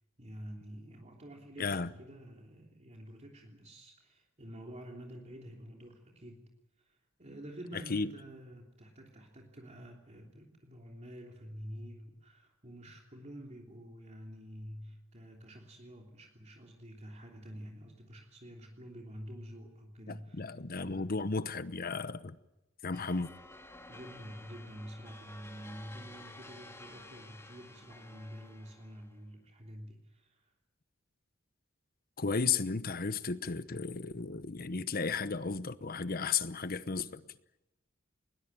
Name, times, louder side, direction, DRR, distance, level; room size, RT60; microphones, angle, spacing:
voice 1, 0.2-6.5 6.8-21.1 23.9-30.5, equal, 35° right, 3.3 m, -48 dB
voice 2, 1.6-1.9 7.9-8.1 20.1-22.4 22.8-23.3 32.2-37.2, left 4 dB, 50° left, 1.0 m, -34 dB
sound 1, 22.9-29.2, left 2 dB, 15° left, 2.4 m, -52 dB
20.5 x 20.5 x 9.1 m
head